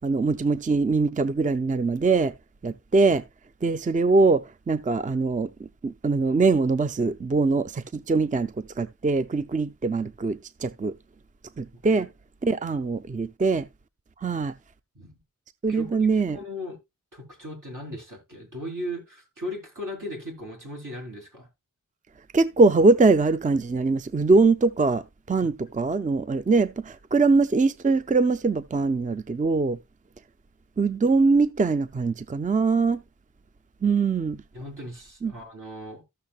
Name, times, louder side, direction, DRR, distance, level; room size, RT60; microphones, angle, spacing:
voice 1, 0.0-2.3 2.6-3.2 3.6-10.9 11.6-12.1 12.4-13.7 14.2-14.5 15.6-16.4 22.3-29.8 30.8-33.0 33.8-34.4 35.2-35.3, right 3 dB, 25° right, 0.4 m, -22 dB
voice 2, 15.7-16.8 17.1-21.5 25.4-25.5 34.5-36.0, left 1 dB, 70° right, 3.8 m, -37 dB
14.5 x 6.5 x 2.4 m
wide cardioid pair, 65°, 32 cm